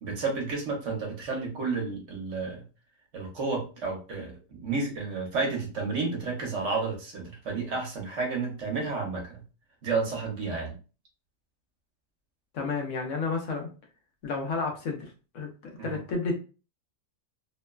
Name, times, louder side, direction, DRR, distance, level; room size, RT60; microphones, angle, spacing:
voice 1, 0.0-2.6 3.1-9.4 9.8-10.7 15.8-16.0, right 4 dB, 65° right, 0 dB, 1.1 m, -31 dB
voice 2, 12.5-13.7 14.2-15.5 15.8-16.4, left 4 dB, 70° left, 2 dB, 1.0 m, -31 dB
2.9 x 2.1 x 2.2 m, 0.35 s
omnidirectional pair, 1.4 m